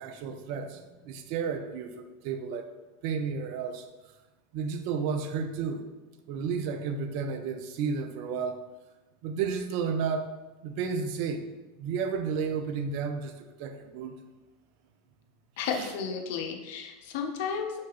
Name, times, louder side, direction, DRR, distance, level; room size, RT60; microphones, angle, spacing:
voice 1, 0.0-2.7 3.0-3.9 4.5-5.8 6.3-8.6 9.2-10.3 10.6-11.4 11.8-14.2 15.8-15.9, right 6 dB, 50° right, 6 dB, 0.3 m, -32 dB
voice 2, 15.6-17.8, left 6 dB, 55° left, 3 dB, 0.4 m, -33 dB
3.0 x 2.9 x 3.3 m, 1.1 s
figure-of-eight pair, 80°, 0 cm